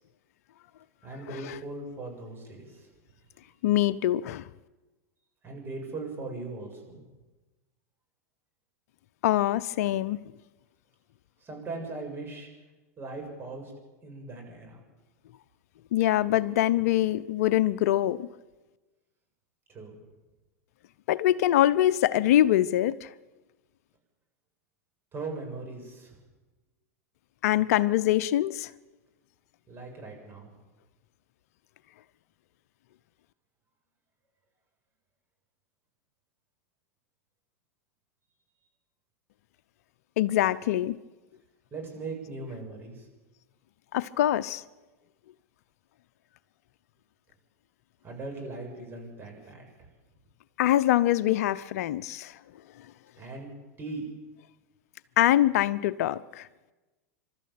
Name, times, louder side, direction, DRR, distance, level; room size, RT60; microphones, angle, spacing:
voice 1, 1.0-2.9 5.4-7.0 11.4-12.5 13.0-13.7 14.0-14.8 19.7-20.0 25.1-26.2 29.7-30.5 41.7-43.1 48.0-49.9 53.2-53.5 53.8-54.0, right 3 dB, 25° right, 7.3 m, -39 dB
voice 2, 3.6-4.5 9.2-10.2 15.9-18.3 21.1-23.1 27.4-28.7 40.2-41.0 43.9-44.6 50.6-52.4 55.2-56.5, left 13 dB, 65° left, 0.7 m, -24 dB
26.5 x 13.0 x 8.7 m
hypercardioid pair, 110°, 9 cm